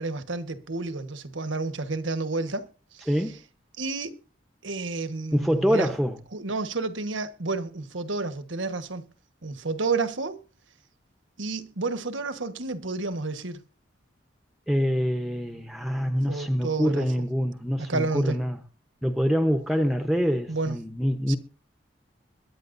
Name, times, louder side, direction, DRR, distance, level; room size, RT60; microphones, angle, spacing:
voice 1, 0.0-3.1 3.8-4.2 4.6-5.9 6.3-9.1 9.4-10.4 11.4-13.6 16.3-17.3 17.8-18.4 20.5-20.8 21.3-21.4, right 3 dB, 90° right, 1.4 m, -30 dB
voice 2, 3.1-3.4 5.3-6.2 14.7-18.6 19.0-21.4, equal, ahead, 0.9 m, -25 dB
22.0 x 11.0 x 2.7 m
head